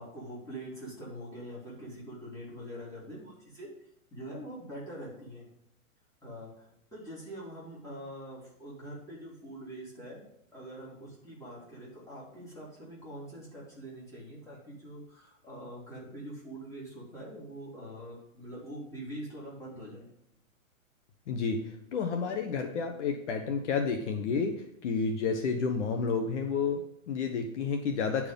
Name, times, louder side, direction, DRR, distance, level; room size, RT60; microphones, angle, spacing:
voice 1, 0.0-5.5 6.2-10.2 10.5-20.1, right 1 dB, 5° left, -7 dB, 3.7 m, -44 dB
voice 2, 21.3-28.3, left 5 dB, 55° left, 5 dB, 1.3 m, -31 dB
10.5 x 4.9 x 5.4 m, 0.79 s
hypercardioid pair, 155°, 42 cm